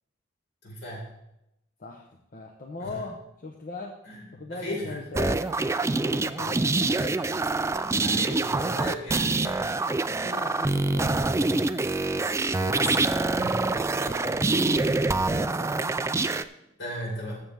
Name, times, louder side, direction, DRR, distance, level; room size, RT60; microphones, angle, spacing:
voice 1, 0.6-1.1 2.8-3.0 4.0-4.2 4.5-5.0 6.2-6.4 8.0-10.2 12.3-13.6 16.8-17.4, equal, 70° left, -3 dB, 4.6 m, -37 dB
voice 2, 1.8-4.0 4.3-5.5 5.9-7.3 10.2-11.2 13.5-16.0, left 3 dB, 45° left, 1 dB, 0.8 m, -40 dB
sound 1, 5.1-16.4, right 3 dB, 15° right, 0.3 m, -25 dB
13.5 x 7.8 x 3.5 m, 0.84 s
head